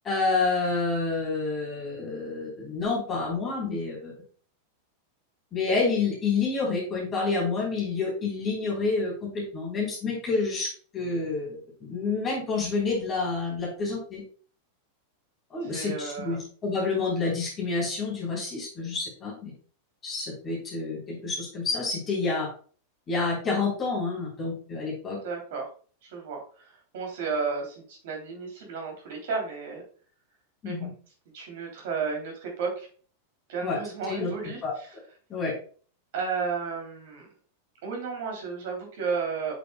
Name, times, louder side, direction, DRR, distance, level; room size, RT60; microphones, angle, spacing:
voice 1, 0.0-4.1 5.5-10.7 10.9-11.6 11.9-14.2 15.5-19.5 20.0-22.5 23.1-25.2 30.6-30.9 33.6-33.8 34.1-34.3 34.6-34.7 35.3-35.5, left 4 dB, 25° left, -4 dB, 3.7 m, -28 dB
voice 2, 15.6-16.4 25.2-25.6 26.0-26.7 26.9-29.8 30.6-30.9 31.3-32.9 33.5-34.9 36.1-37.3 37.8-39.5, right 5 dB, 55° right, 1 dB, 3.0 m, -33 dB
8.4 x 6.8 x 2.3 m, 0.41 s
figure-of-eight pair, 90°, 0 cm